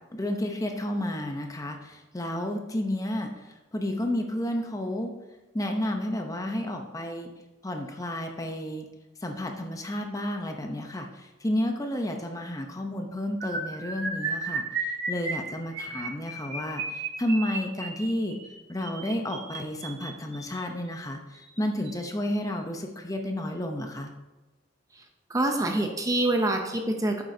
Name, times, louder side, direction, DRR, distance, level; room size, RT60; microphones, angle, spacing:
voice 1, 0.1-3.3 3.7-5.1 5.5-7.3 7.6-8.8 9.2-11.1 11.4-14.6 15.1-18.4 18.7-21.2 21.6-24.1, left 1 dB, 15° left, 4 dB, 0.7 m, -31 dB
sound 1, 13.4-20.6 21.3-21.6 21.9-22.1 22.4-22.6, right 3 dB, 65° right, 1.8 m, -34 dB
voice 2, 25.3-27.2, right 1 dB, 15° right, 3 dB, 0.6 m, -25 dB
8.9 x 7.6 x 2.7 m, 1.1 s
head